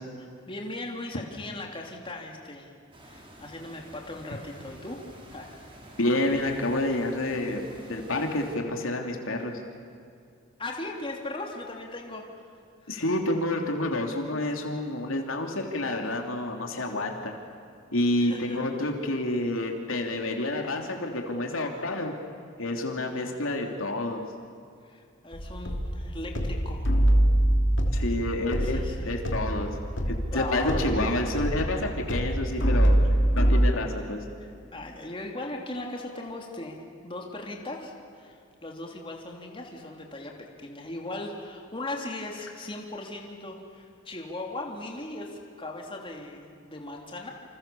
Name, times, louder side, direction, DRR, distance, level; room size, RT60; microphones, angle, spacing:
voice 1, 0.5-2.7 3.0-5.0 5.3-6.0 10.6-13.0 18.2-18.6 23.0-23.4 24.8-26.9 28.6-29.1 30.3-30.9 33.0-33.1 34.4-47.3, left 2 dB, 25° left, 0 dB, 3.2 m, -38 dB
sound 1, 2.9-8.6, right 1 dB, 25° right, 4.8 m, -49 dB
voice 2, 6.0-9.5 12.9-17.3 17.9-22.1 22.6-24.2 27.9-29.7 30.1-33.0 33.3-34.2, left 1 dB, 80° left, 2 dB, 3.2 m, -29 dB
sound 2, 25.3-33.6, right 1 dB, 65° left, 3.1 m, -25 dB
28.5 x 27.5 x 7.1 m, 2.4 s
head